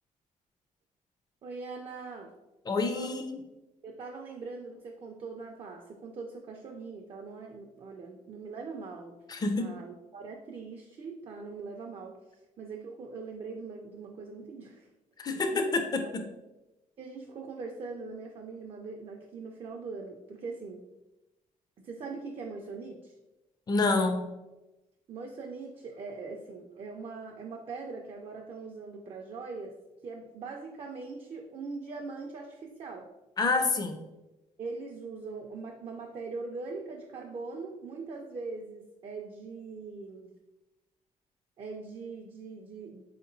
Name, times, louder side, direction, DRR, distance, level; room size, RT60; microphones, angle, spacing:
voice 1, 1.4-2.3 2.8-3.1 3.8-9.2 9.6-12.2 12.6-14.9 15.5-16.1 17.0-20.9 21.8-23.1 25.1-29.8 30.0-33.1 34.6-40.3 41.6-43.0, right 4 dB, 40° right, 2 dB, 0.4 m, -41 dB
voice 2, 2.7-3.4 9.3-9.7 15.2-16.2 23.7-24.3 33.4-34.0, left 3 dB, 30° left, 5 dB, 0.4 m, -28 dB
3.7 x 2.9 x 2.5 m, 1.0 s
cardioid pair, 110°, 14 cm